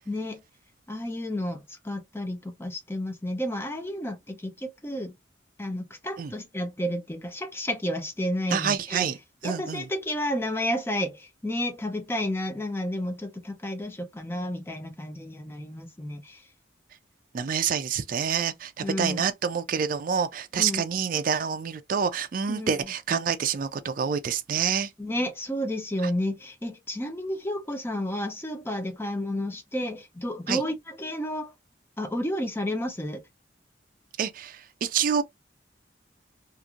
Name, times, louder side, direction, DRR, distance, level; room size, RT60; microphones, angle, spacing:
voice 1, 0.1-0.4 0.9-5.1 5.6-9.1 9.4-16.4 18.8-19.2 20.5-20.8 22.5-22.8 25.0-31.5 32.0-33.2, left 1 dB, 15° left, 0.6 m, -31 dB
voice 2, 8.5-9.2 9.4-9.8 17.3-24.9 30.5-30.6 34.2-35.2, right 7 dB, 50° right, 0.4 m, -27 dB
2.9 x 2.5 x 2.4 m
head